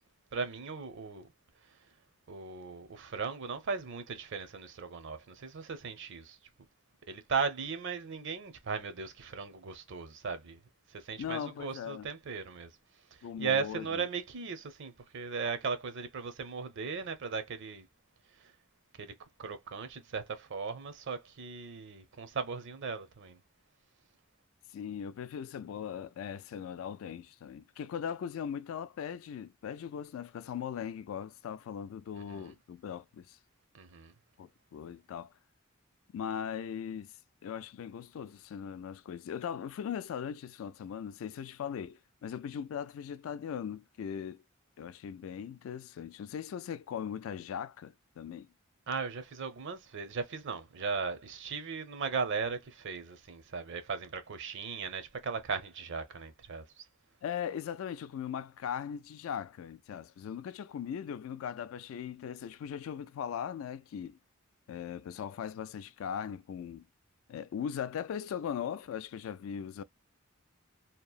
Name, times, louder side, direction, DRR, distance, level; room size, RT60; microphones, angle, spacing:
voice 1, 0.3-1.3 2.3-6.4 7.1-10.6 10.9-12.7 13.4-17.9 19.0-19.1 19.4-23.4 32.3-32.5 33.7-34.1 48.9-56.6, right 5 dB, 60° right, 0.6 m, -37 dB
voice 2, 11.2-12.1 13.2-14.0 24.7-33.4 34.4-35.3 36.1-37.1 37.4-44.4 44.8-48.5 57.2-64.2 64.7-66.8 67.3-69.8, left 8 dB, 70° left, 0.3 m, -39 dB
2.8 x 2.0 x 2.3 m
head